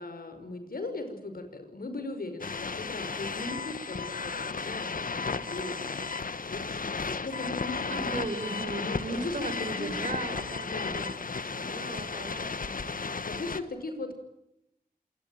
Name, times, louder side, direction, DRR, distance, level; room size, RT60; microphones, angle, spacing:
voice 1, 0.0-8.2 8.8-9.9 10.7-11.1 13.3-14.2, left 2 dB, 85° left, 9 dB, 5.6 m, -39 dB
sound 1, 2.4-13.6, left 4 dB, 70° left, 1.5 m, -34 dB
voice 2, 7.9-11.1 11.5-13.2, right 2 dB, 55° right, 9 dB, 5.1 m, -37 dB
27.5 x 23.5 x 9.3 m, 0.83 s
wide cardioid pair, 80°, 15 cm